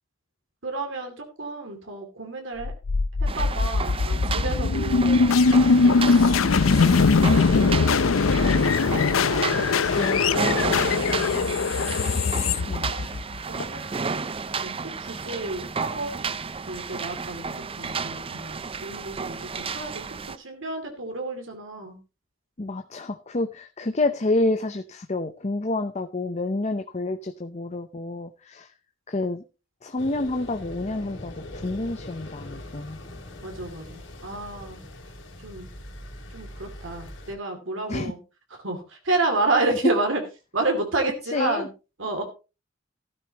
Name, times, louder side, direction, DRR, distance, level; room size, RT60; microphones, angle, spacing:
voice 1, 0.6-2.7 3.2-5.3 5.6-6.1 6.4-8.7 9.3-10.0 11.2-11.6 12.9-13.1 13.5-14.1 14.6-16.4 16.7-20.1 20.4-22.0 33.4-34.8 35.4-35.7 36.3-38.2 38.6-40.2 40.5-41.7 42.0-42.2, right 2 dB, 70° right, 4 dB, 2.6 m, -31 dB
sound 1, 2.6-13.6, left 4 dB, 85° left, 0.6 m, -21 dB
sound 2, 3.3-20.4, right 5 dB, 30° right, 0.5 m, -32 dB
voice 2, 9.8-10.2 11.9-12.0 12.7-12.9 22.6-28.7 29.1-29.4 29.8-33.0 37.9-38.1 41.3-41.7, left 2 dB, 35° left, 8 dB, 0.7 m, -28 dB
sound 3, 30.0-37.4, left 1 dB, 60° left, 3.4 m, -41 dB
14.0 x 12.0 x 2.9 m, 0.30 s
head